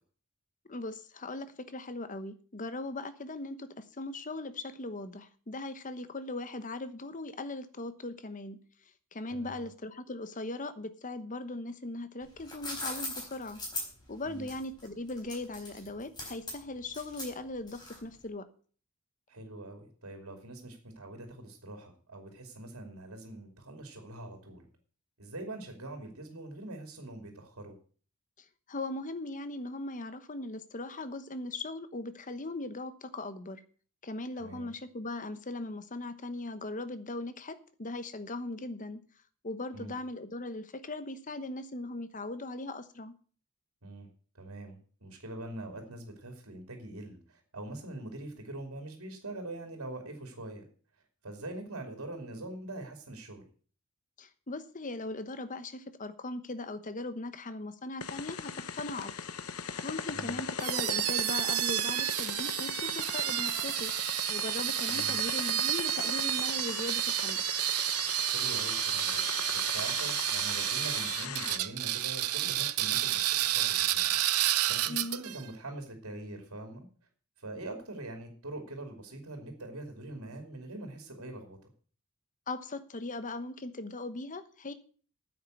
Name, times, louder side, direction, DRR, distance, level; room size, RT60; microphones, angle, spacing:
voice 1, 0.7-8.6 9.1-13.6 14.1-18.5 28.7-33.6 34.0-39.0 39.4-43.1 54.2-59.1 59.8-63.9 64.3-67.4 74.9-75.2 82.5-84.7, left 2 dB, 35° left, 11 dB, 1.0 m, -39 dB
voice 2, 9.3-9.7 14.2-14.5 19.3-24.7 25.2-27.7 34.4-34.7 39.7-39.9 43.8-44.1 44.3-50.7 51.2-53.4 60.1-60.4 64.9-65.2 68.3-69.2 69.5-76.9 77.4-81.6, right 2 dB, 70° right, 4 dB, 2.8 m, -43 dB
sound 1, 12.2-18.2, left 2 dB, 20° left, 4.4 m, -40 dB
sound 2, 58.0-71.6, left 6 dB, 80° left, 0.9 m, -39 dB
sound 3, 60.6-75.4, right 14 dB, 90° right, 0.7 m, -30 dB
9.5 x 8.0 x 7.9 m, 0.43 s
head